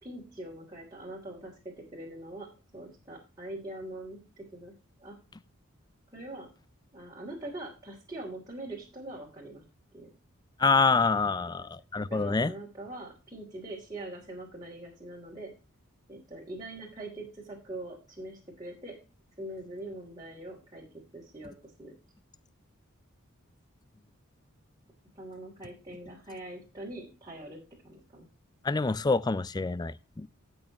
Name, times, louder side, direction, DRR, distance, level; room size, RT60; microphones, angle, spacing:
voice 1, 0.0-2.5 2.7-4.7 5.0-5.2 6.1-6.5 6.9-9.6 9.9-10.2 12.0-15.5 16.1-19.0 19.4-20.8 21.1-21.9 25.1-28.3, right 1 dB, 20° right, 3.1 m, -43 dB
voice 2, 10.6-12.5 28.6-30.3, left 4 dB, 20° left, 0.4 m, -26 dB
17.0 x 6.3 x 3.0 m
head